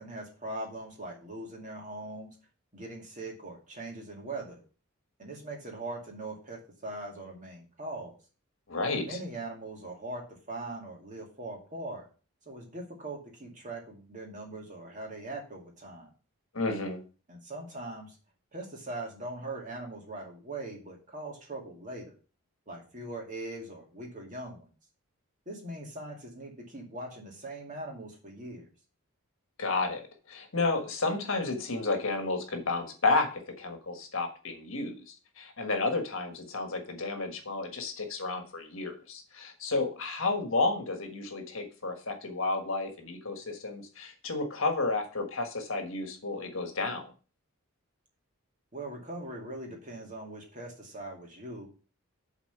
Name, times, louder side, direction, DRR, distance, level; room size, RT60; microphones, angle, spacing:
voice 1, 0.0-2.3 2.7-4.6 5.2-8.1 8.9-10.2 10.5-12.0 12.5-16.1 17.3-18.2 18.5-22.2 22.7-24.7 25.5-28.6 48.7-51.7, right 2 dB, 35° right, 0 dB, 2.2 m, -41 dB
voice 2, 8.7-9.2 16.5-17.0 29.6-30.0 30.3-33.3 33.6-47.0, left 3 dB, 65° left, 5 dB, 1.5 m, -31 dB
7.3 x 4.1 x 6.6 m, 0.36 s
head